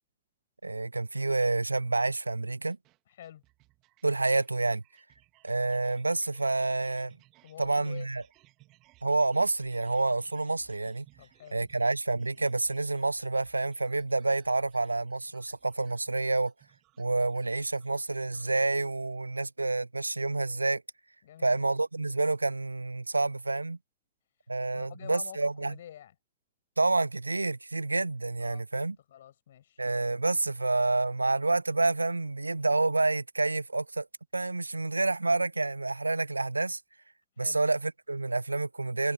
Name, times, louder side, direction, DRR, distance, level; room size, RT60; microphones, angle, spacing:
voice 1, 0.6-2.8 4.0-4.8 5.4-7.1 7.6-8.2 9.0-11.1 11.5-16.5 17.0-20.8 21.4-23.8 24.5-25.7 26.8-29.0 29.8-34.1 34.3-36.8 37.4-39.1, right 2 dB, 80° right, 0.8 m, -28 dB
sound 1, 2.7-18.6, right 20 dB, 40° right, 3.4 m, -63 dB
voice 2, 3.1-3.4 7.4-8.1 11.2-11.6 21.2-21.6 24.7-26.1 28.4-29.8 37.4-37.6, left 11 dB, 60° left, 7.2 m, -48 dB
figure-of-eight pair, 90°, 0 cm